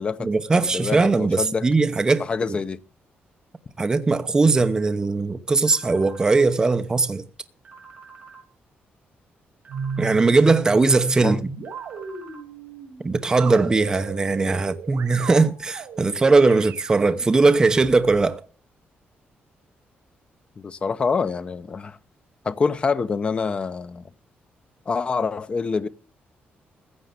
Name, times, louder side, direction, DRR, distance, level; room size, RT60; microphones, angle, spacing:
voice 1, 0.2-2.2 3.8-7.2 10.0-11.4 13.0-18.4, right 3 dB, 20° right, 0.9 m, -19 dB
voice 2, 0.7-1.7 2.2-2.8 11.2-11.4 20.6-22.0 22.4-24.0 24.9-25.9, left 5 dB, 30° left, 0.7 m, -26 dB
sound 1, 5.7-6.4 7.7-8.4 9.7-10.4 11.7-12.4, right 5 dB, 35° right, 5.2 m, -46 dB
sound 2, 9.7-18.3, right 4 dB, 70° right, 3.7 m, -36 dB
15.0 x 8.6 x 6.7 m
wide cardioid pair, 170°, 4 cm